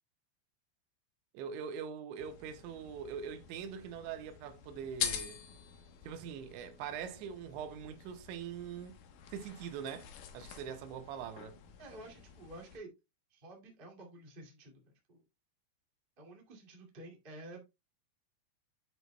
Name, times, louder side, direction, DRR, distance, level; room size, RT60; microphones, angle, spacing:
voice 1, 1.3-5.4 6.0-9.0 9.3-10.1 10.3-11.6, right 7 dB, 85° right, 3.2 m, -43 dB
sound 1, 2.2-12.8, left 9 dB, 70° left, 2.0 m, -45 dB
voice 2, 11.8-12.9 13.3-15.2 16.2-17.6, right 1 dB, 25° right, 1.3 m, -51 dB
9.2 x 8.2 x 2.2 m
omnidirectional pair, 5.2 m